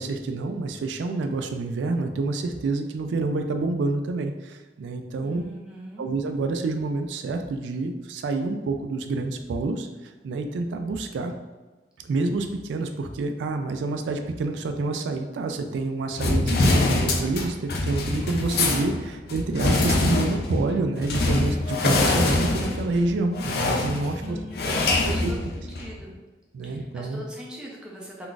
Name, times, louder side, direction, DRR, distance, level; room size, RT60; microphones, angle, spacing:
voice 1, 0.0-5.4 6.0-11.3 12.0-24.4 24.6-24.7 25.0-25.3 26.5-27.2, right 3 dB, 85° right, 6 dB, 0.3 m, -28 dB
voice 2, 5.2-6.0 24.1-25.4 25.8-26.1 26.6-28.3, equal, 5° right, -4 dB, 0.5 m, -40 dB
sound 1, 16.2-26.0, left 2 dB, 55° left, 0.4 m, -24 dB
2.4 x 2.3 x 3.7 m, 1.2 s
head